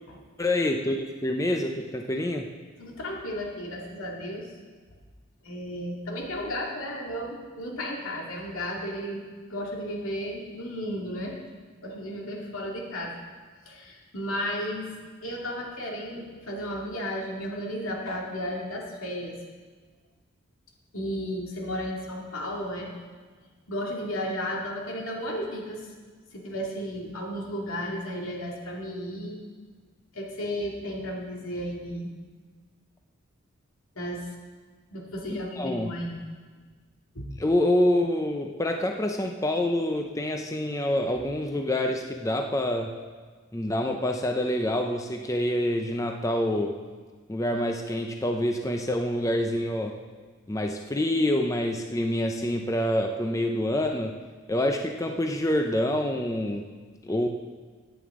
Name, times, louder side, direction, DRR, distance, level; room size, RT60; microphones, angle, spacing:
voice 1, 0.4-2.5 35.3-35.9 37.4-42.9 43.5-46.7 47.3-50.0 50.5-54.2 54.5-56.6 57.0-57.3, left 1 dB, 15° left, 3 dB, 0.5 m, -26 dB
voice 2, 2.8-4.5 5.4-9.2 9.5-11.3 11.8-13.1 13.7-14.9 15.2-19.4 20.9-22.9 23.7-25.8 26.3-29.4 30.1-32.1 34.0-34.3 34.9-36.2 37.1-37.3, equal, 85° left, -1 dB, 2.3 m, -33 dB
14.5 x 9.2 x 3.7 m, 1.5 s
head